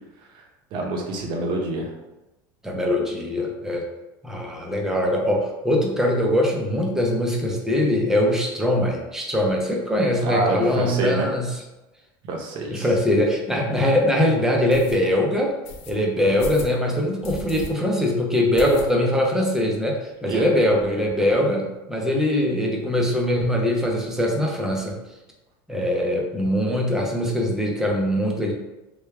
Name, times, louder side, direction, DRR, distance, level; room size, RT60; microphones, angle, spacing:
voice 1, 0.7-1.9 10.2-11.3 12.3-12.9 20.3-20.5, right 2 dB, 50° right, 1 dB, 0.8 m, -26 dB
voice 2, 2.6-3.8 4.2-11.5 12.7-15.6 15.9-25.0 25.7-28.5, left 1 dB, 5° right, 0 dB, 0.6 m, -22 dB
sound 1, 13.3-13.4 13.9-14.0 14.7-15.0 15.6-15.9 16.4-16.7 17.2-17.7 18.0-18.1 18.6-19.2 19.6-19.7 19.9-20.0 20.3-20.9, left 3 dB, 65° left, 0.6 m, -36 dB
3.4 x 2.2 x 3.4 m, 1.0 s
supercardioid pair, 135°, 11 cm